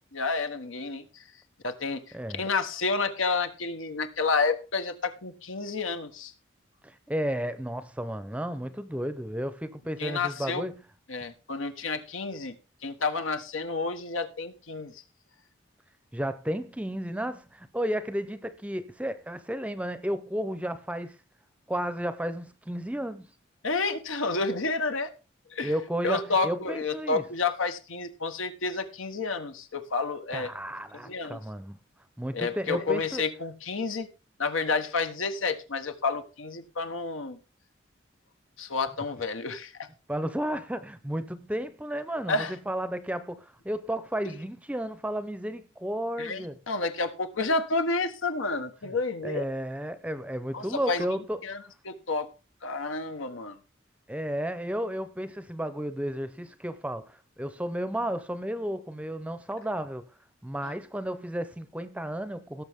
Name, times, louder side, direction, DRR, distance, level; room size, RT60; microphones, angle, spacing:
voice 1, 0.1-1.2 1.6-6.3 10.0-10.6 11.1-12.5 12.8-15.0 23.6-25.1 25.5-25.7 26.0-30.5 31.1-31.4 32.3-34.1 34.4-37.4 38.6-39.9 42.3-42.5 44.2-44.3 46.2-49.4 50.5-51.0 51.4-52.3 52.6-53.6 60.6-60.7, left 4 dB, 90° left, 1.3 m, -30 dB
voice 2, 2.1-2.4 6.8-10.8 16.1-21.2 21.7-23.3 25.6-27.2 30.3-31.8 32.2-33.2 40.1-46.6 48.8-48.9 49.2-51.4 54.1-60.1 60.4-62.6, equal, 5° right, 0.6 m, -33 dB
17.5 x 7.0 x 3.6 m
head